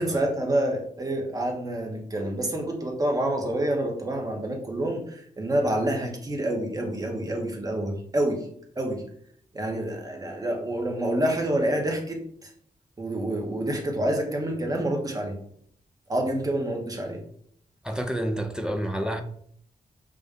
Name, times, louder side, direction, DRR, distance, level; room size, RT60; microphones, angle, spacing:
voice 1, 0.0-8.5 8.8-9.1 9.5-12.5 13.0-15.4 16.1-17.2, right 1 dB, 25° right, 2 dB, 0.7 m, -27 dB
voice 2, 17.8-19.2, equal, 5° right, 4 dB, 0.3 m, -29 dB
5.1 x 2.2 x 3.5 m, 0.64 s
wide cardioid pair, 160°, 15 cm